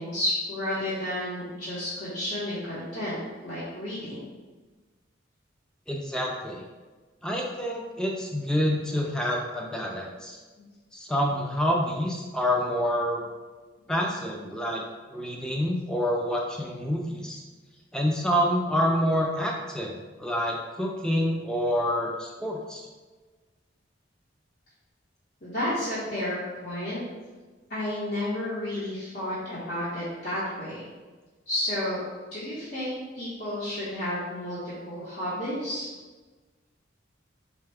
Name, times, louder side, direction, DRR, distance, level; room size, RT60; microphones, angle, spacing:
voice 1, 0.0-4.3 10.6-10.7 25.4-27.0 27.7-30.9 31.5-32.0 32.3-35.9, left 1 dB, 50° left, -11 dB, 1.0 m, -31 dB
voice 2, 5.9-6.6 7.2-10.4 10.9-13.2 13.9-14.8 15.1-17.4 17.9-22.8, equal, 5° left, -1 dB, 0.4 m, -27 dB
4.1 x 2.2 x 3.4 m, 1.3 s
head